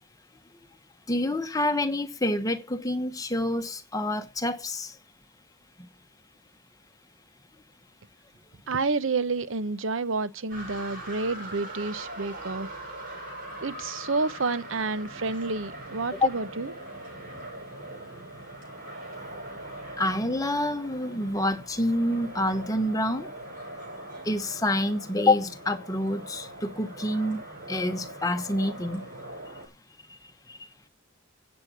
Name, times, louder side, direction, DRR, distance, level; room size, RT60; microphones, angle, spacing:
voice 1, 1.1-4.9 16.1-16.3 20.0-23.3 24.3-27.4 27.7-29.0 30.5-30.6, left 1 dB, 15° left, 1.2 m, -27 dB
voice 2, 8.7-12.7 13.6-16.7, right 3 dB, 75° right, 0.8 m, -29 dB
sound 1, 10.5-29.7, right 1 dB, 45° right, 7.1 m, -41 dB
13.5 x 8.2 x 6.0 m
head